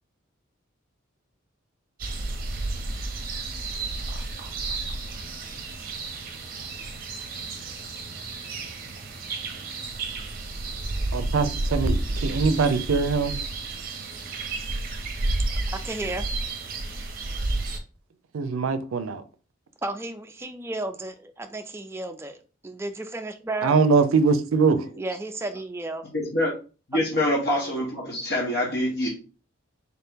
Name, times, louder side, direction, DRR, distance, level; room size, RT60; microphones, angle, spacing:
sound 1, 2.0-17.8, right 2 dB, 45° right, 0.7 m, -31 dB
voice 1, 11.1-13.4 18.3-19.2 23.6-24.8, right 4 dB, 90° right, 0.5 m, -22 dB
voice 2, 15.5-16.3 19.8-23.7 25.0-26.0, right 2 dB, 10° right, 0.4 m, -33 dB
voice 3, 26.1-26.5 26.9-29.1, left 1 dB, 55° left, 0.9 m, -25 dB
4.0 x 2.8 x 3.5 m
head